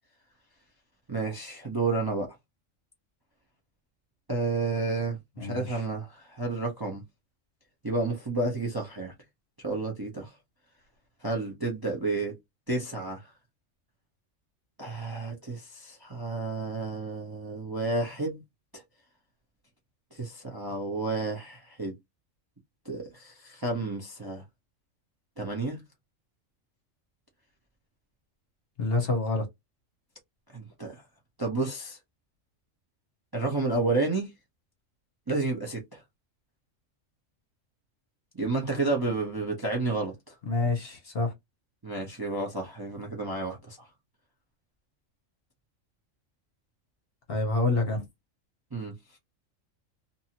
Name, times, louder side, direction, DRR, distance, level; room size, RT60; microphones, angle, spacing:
voice 1, 1.1-2.4 4.3-7.0 7.8-9.1 9.6-10.3 11.2-12.4 12.7-13.3 14.8-18.4 18.7-18.8 20.1-21.9 22.8-24.4 25.4-25.8 30.5-31.0 31.4-32.0 33.3-34.3 35.3-36.0 38.4-40.3 41.8-43.9 48.7-48.9, right 3 dB, 25° right, 0.6 m, -31 dB
voice 2, 5.4-5.8 28.8-29.5 40.5-41.3 47.3-48.0, left 3 dB, 50° left, 1.1 m, -27 dB
2.7 x 2.6 x 2.8 m
omnidirectional pair, 1.3 m